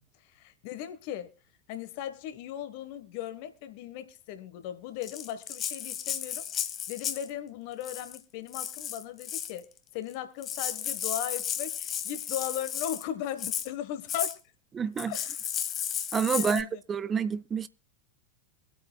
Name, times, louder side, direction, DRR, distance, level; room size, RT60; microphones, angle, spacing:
voice 1, 0.2-1.3 1.7-14.4 15.1-15.4 16.3-16.8, left 10 dB, 45° left, 1.3 m, -37 dB
Rattle (instrument), 5.0-7.3 7.8-8.2 8.5-9.6 10.1-10.2 10.4-13.1 13.4-13.7 14.1-14.4 15.0-16.6, left 9 dB, 30° left, 1.1 m, -34 dB
voice 2, 14.7-15.1 16.1-17.7, right 7 dB, 20° right, 0.4 m, -28 dB
24.5 x 8.4 x 2.3 m
figure-of-eight pair, 90°, 0 cm